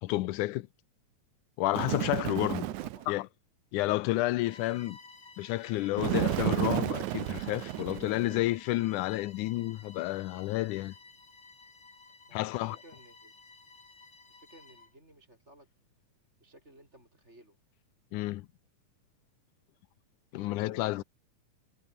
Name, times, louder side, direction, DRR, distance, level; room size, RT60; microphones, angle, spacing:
voice 1, 0.0-0.7 1.6-2.7 3.1-3.3 3.7-5.0 5.4-10.9 12.3-12.8 18.1-18.5 20.3-21.0, left 17 dB, 80° left, 2.2 m, -30 dB
Bird, 1.7-3.1 6.0-8.5, right 16 dB, 75° right, 2.1 m, -32 dB
voice 2, 2.7-3.1 12.3-13.3 14.3-15.7 16.4-17.6 20.3-21.1, right 1 dB, 20° right, 8.2 m, -56 dB
Bowed string instrument, 4.3-15.0, left 3 dB, 35° left, 4.6 m, -55 dB
omnidirectional pair, 3.6 m